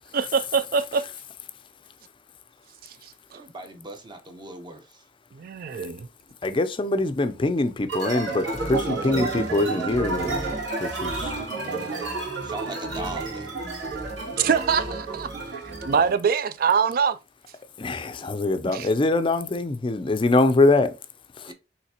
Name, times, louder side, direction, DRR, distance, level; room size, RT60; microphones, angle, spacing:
voice 1, 0.1-1.0 5.4-6.1 14.4-17.2 18.6-18.9, right 6 dB, 50° right, 0.3 m, -24 dB
voice 2, 3.3-4.8 12.4-13.5 21.5-21.6, right 2 dB, 25° right, 0.7 m, -38 dB
voice 3, 6.4-10.4 10.8-11.3 17.8-20.9 21.4-21.5, left 2 dB, 30° left, 0.4 m, -23 dB
sound 1, 7.9-16.2, right 3 dB, 75° right, 2.4 m, -30 dB
5.8 x 3.2 x 2.8 m
head